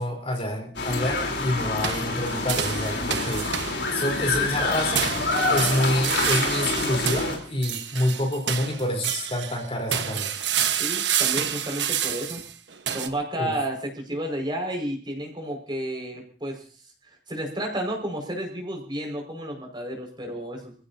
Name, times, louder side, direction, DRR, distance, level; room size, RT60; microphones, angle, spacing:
voice 1, 0.0-3.5 3.9-5.1 5.5-10.3 13.4-13.5, left 1 dB, 35° left, 1 dB, 4.0 m, -27 dB
sound 1, 0.7-7.4, left 3 dB, 75° left, 3.8 m, -27 dB
sound 2, 1.8-4.1 4.9-9.6 9.9-13.1, right 9 dB, 85° right, 1.3 m, -28 dB
voice 2, 10.8-12.4 12.9-16.6 17.0-20.7, right 1 dB, 25° right, 2 dB, 5.5 m, -31 dB
28.5 x 15.5 x 2.8 m, 0.41 s
head